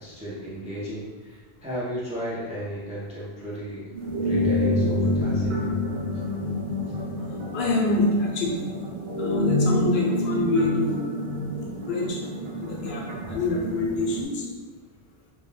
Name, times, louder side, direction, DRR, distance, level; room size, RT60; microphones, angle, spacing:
voice 1, 0.0-3.9 4.2-5.7 6.8-6.9, equal, 10° right, -8 dB, 0.4 m, -35 dB
sound 1, 3.9-14.2, left 1 dB, 75° right, 0.8 m, -27 dB
voice 2, 7.5-8.6 9.2-11.2 11.7-12.2 12.6-14.5, left 2 dB, 75° left, -2 dB, 0.8 m, -26 dB
2.3 x 2.1 x 3.1 m, 1.3 s
omnidirectional pair, 1.1 m